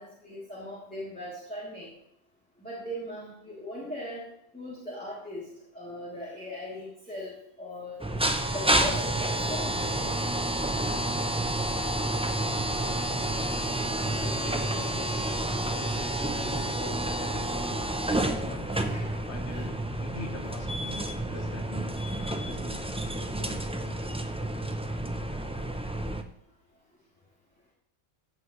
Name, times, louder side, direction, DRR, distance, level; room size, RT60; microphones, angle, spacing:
voice 1, 0.0-1.9 2.6-4.2 4.5-5.5 5.7-8.0 8.5-10.1 13.8-13.9 18.7-19.2 19.5-19.7, left 1 dB, 5° left, -7 dB, 2.8 m, -39 dB
sound 1, 8.0-26.2, right 1 dB, 10° right, 0.3 m, -29 dB
voice 2, 14.0-15.3 15.6-16.0 16.3-18.0 18.3-18.7 19.1-23.6, left 3 dB, 70° left, 4 dB, 1.5 m, -44 dB
15.5 x 7.7 x 3.1 m, 0.73 s
omnidirectional pair, 1.2 m